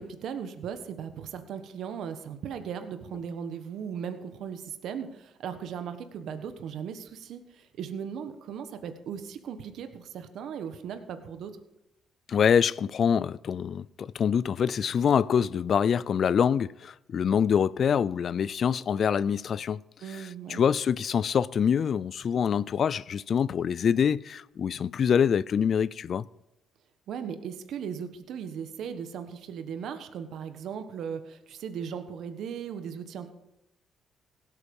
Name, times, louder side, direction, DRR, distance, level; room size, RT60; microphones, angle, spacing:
voice 1, 0.0-11.6 20.0-20.6 27.1-33.3, right 7 dB, 75° right, 1.3 m, -37 dB
voice 2, 12.3-19.8 20.1-26.3, left 7 dB, 55° left, 0.4 m, -25 dB
16.5 x 8.4 x 5.4 m
cardioid pair, 90°, 0 cm